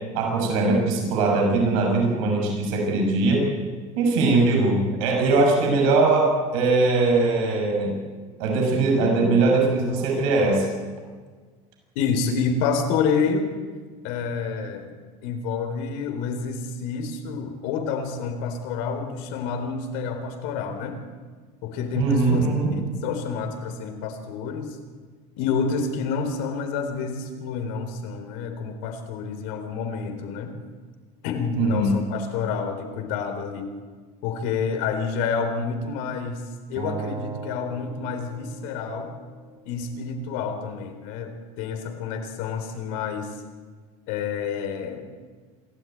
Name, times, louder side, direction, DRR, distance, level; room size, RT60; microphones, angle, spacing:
voice 1, 0.1-3.5 4.0-8.0 8.4-10.7 22.0-22.7 31.6-32.0, right 3 dB, 80° right, 1 dB, 6.9 m, -21 dB
voice 2, 12.0-13.5 14.0-14.9 15.2-21.0 21.6-22.5 22.8-24.8 25.4-30.6 31.2-33.7 34.2-36.4 36.7-39.1 39.7-43.3 44.1-45.1, left 5 dB, 70° left, 6 dB, 3.8 m, -28 dB
Acoustic guitar, 36.8-40.0, right 5 dB, 45° right, 3.8 m, -38 dB
27.0 x 13.0 x 9.3 m, 1.5 s
supercardioid pair, 125°, 17 cm